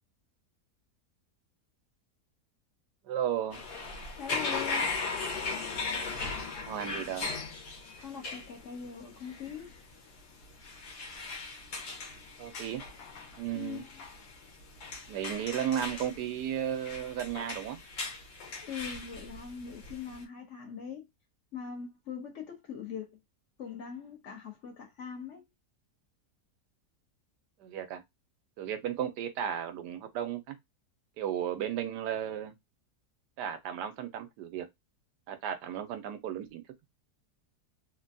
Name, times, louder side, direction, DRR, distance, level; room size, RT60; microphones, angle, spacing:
voice 1, 3.0-3.6 6.6-7.3 12.4-12.8 13.4-13.8 15.1-17.8 27.6-28.0 28.6-30.6 31.2-32.5 33.4-34.7 35.3-36.6, right 10 dB, 90° right, 1.2 m, -34 dB
sound 1, 3.5-20.2, left 4 dB, 80° left, 1.5 m, -38 dB
voice 2, 4.2-4.9 8.0-9.8 13.5-13.8 18.6-21.1 21.5-23.2 23.6-25.4, left 7 dB, 55° left, 1.0 m, -41 dB
3.4 x 2.2 x 2.6 m
omnidirectional pair, 1.7 m